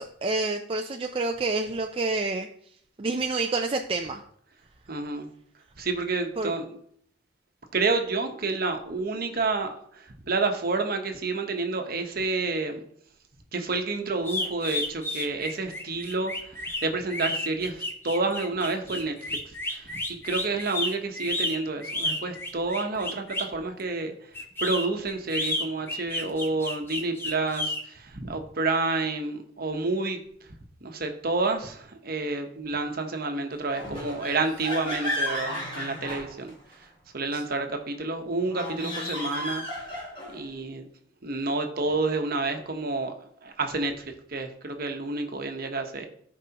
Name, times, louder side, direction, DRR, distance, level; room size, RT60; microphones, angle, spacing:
voice 1, 0.0-2.5 3.0-4.2 6.4-6.5 37.3-37.4, right 3 dB, 30° right, 4 dB, 0.4 m, -28 dB
voice 2, 4.9-5.3 5.8-6.8 7.7-12.8 13.5-24.1 24.6-30.2 30.8-39.6 40.3-40.9 41.2-46.1, right 3 dB, 55° right, 5 dB, 1.0 m, -29 dB
sound 1, 14.2-23.6 24.3-27.8, left 1 dB, 10° left, 1.0 m, -31 dB
sound 2, 33.7-36.8 38.4-40.4, left 1 dB, 30° left, 3.0 m, -33 dB
14.0 x 4.8 x 2.9 m, 0.65 s
head